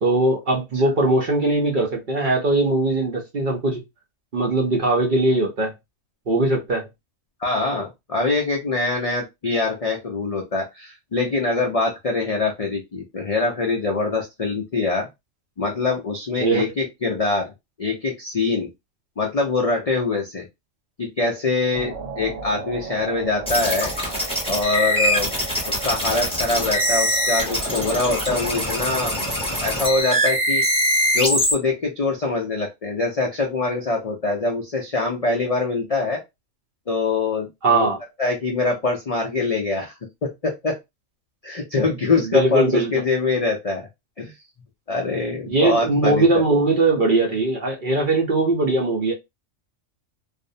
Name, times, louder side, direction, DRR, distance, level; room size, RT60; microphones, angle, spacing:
voice 1, 0.0-3.8 4.3-5.7 6.3-6.8 16.4-16.6 37.6-38.0 42.2-42.9 45.5-49.1, right 2 dB, 50° right, 0.6 m, -20 dB
voice 2, 7.4-15.1 15.6-17.5 17.8-18.7 19.2-20.5 21.0-23.9 24.5-25.3 25.7-29.3 29.6-30.6 31.1-36.2 36.9-37.9 38.2-40.8 41.4-43.9 44.2-44.3 44.9-46.4, left 3 dB, 60° left, 0.3 m, -24 dB
sound 1, 21.7-30.0, right 5 dB, 75° right, 1.1 m, -36 dB
sound 2, 23.5-31.5, equal, 5° left, 0.6 m, -23 dB
2.5 x 2.0 x 2.5 m
omnidirectional pair, 1.4 m